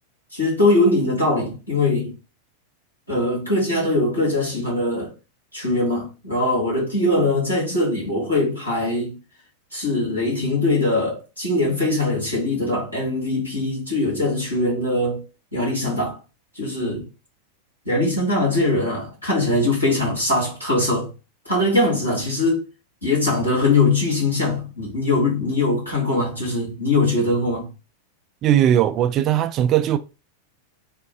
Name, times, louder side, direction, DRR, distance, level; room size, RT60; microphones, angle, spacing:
voice 1, 0.3-2.1 3.1-5.1 5.5-9.2 9.7-15.2 15.5-16.2 16.6-17.0 17.9-21.1 21.5-22.6 23.0-27.7, left 2 dB, 90° left, 2.0 m, -21 dB
voice 2, 28.4-30.0, right 11 dB, 35° right, 0.3 m, -18 dB
3.6 x 2.3 x 3.4 m
figure-of-eight pair, 90°, 0 cm